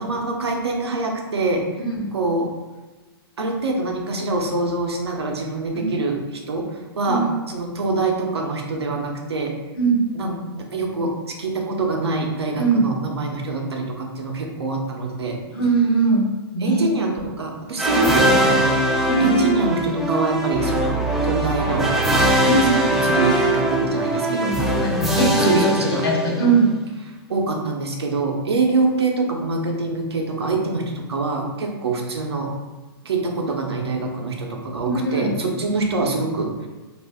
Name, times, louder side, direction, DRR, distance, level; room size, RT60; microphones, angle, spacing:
voice 1, 0.0-1.6 2.1-2.5 3.4-9.5 10.1-15.4 16.6-24.6 25.4-26.0 26.4-26.6 27.3-32.5 33.0-36.7, right 3 dB, 85° right, 1 dB, 0.6 m, -25 dB
voice 2, 12.5-12.8 15.5-16.2 16.5-16.9 17.9-18.3 19.1-19.5 22.5-22.7 24.3-26.6 34.8-35.3, right 3 dB, 60° left, -2 dB, 1.0 m, -21 dB
sound 1, 17.8-26.7, right 1 dB, ahead, 0.3 m, -21 dB
2.6 x 2.5 x 3.4 m, 1.2 s
hypercardioid pair, 130°, 13 cm